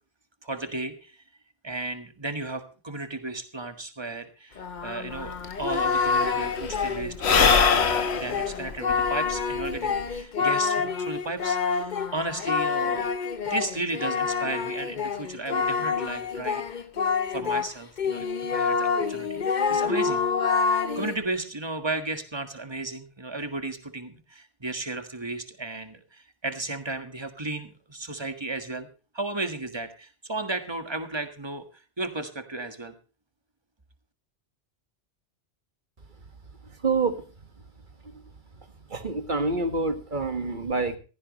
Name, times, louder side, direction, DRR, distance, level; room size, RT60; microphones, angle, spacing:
voice 1, 0.4-1.2 1.6-13.1 13.5-16.6 17.3-20.2 20.9-28.9 29.1-31.6 32.0-32.9, right 2 dB, 25° right, 8 dB, 1.7 m, -34 dB
Singing, 4.6-17.7 18.0-21.2, left 5 dB, 45° left, 1.0 m, -27 dB
Sigh / Breathing, 5.2-5.3 5.4-10.2, left 6 dB, 75° left, 1.4 m, -25 dB
voice 2, 36.8-37.2 38.0-38.1 38.9-41.0, right 3 dB, 45° right, 9 dB, 1.7 m, -27 dB
16.0 x 15.0 x 3.1 m, 0.34 s
omnidirectional pair, 1.1 m